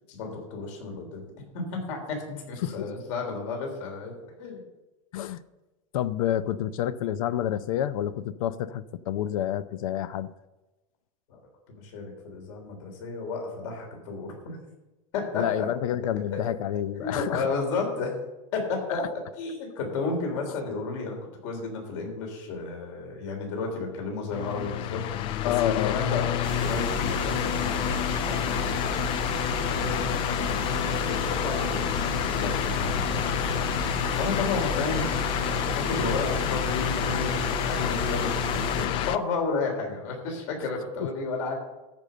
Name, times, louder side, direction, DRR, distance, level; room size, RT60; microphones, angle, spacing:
voice 1, 0.1-1.2 1.5-4.1 4.4-4.6 11.3-11.4 11.7-14.6 15.1-15.7 16.3-16.4 17.0-18.1 18.5-19.0 19.4-21.2 21.4-29.0 29.7-33.6 33.9-35.1 35.4-41.5, left 4 dB, 60° left, 2 dB, 3.5 m, -32 dB
voice 2, 5.9-10.3 15.3-17.5 18.9-19.0 25.4-26.0 41.0-41.1, left 11 dB, 80° left, 15 dB, 0.6 m, -29 dB
sound 1, 24.3-39.2, left 12 dB, 30° left, 0.4 m, -28 dB
sound 2, 26.4-38.9, right 9 dB, 70° right, 1.0 m, -35 dB
13.5 x 5.4 x 7.7 m, 1.1 s
supercardioid pair, 160°, 17 cm